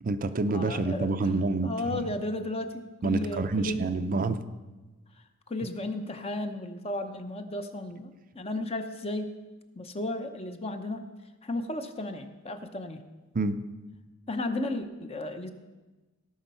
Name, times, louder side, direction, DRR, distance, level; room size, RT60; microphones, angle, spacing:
voice 1, 0.0-2.1 3.0-4.4 13.3-13.6, right 3 dB, 40° right, 10 dB, 0.5 m, -28 dB
voice 2, 0.5-1.3 1.6-3.9 5.5-9.3 9.7-11.1 11.4-13.0 14.3-15.5, left 2 dB, 30° left, 7 dB, 0.8 m, -34 dB
17.5 x 6.3 x 5.5 m, 1.2 s
head